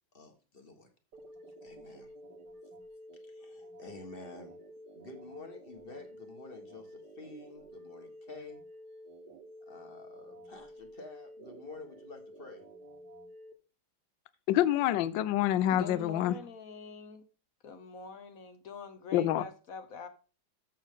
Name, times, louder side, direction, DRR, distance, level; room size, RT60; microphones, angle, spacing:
voice 1, 0.1-0.9 1.6-2.1 3.3-4.6 4.9-8.6 9.7-12.6, left 3 dB, 30° left, 1.4 m, -49 dB
sound 1, 1.1-13.5, equal, 60° right, 1.7 m, -51 dB
voice 2, 14.5-16.4 19.1-19.4, left 12 dB, 75° left, 1.3 m, -27 dB
voice 3, 15.7-17.2 17.6-20.1, left 5 dB, 55° left, 1.1 m, -44 dB
13.0 x 6.5 x 3.7 m
omnidirectional pair, 2.1 m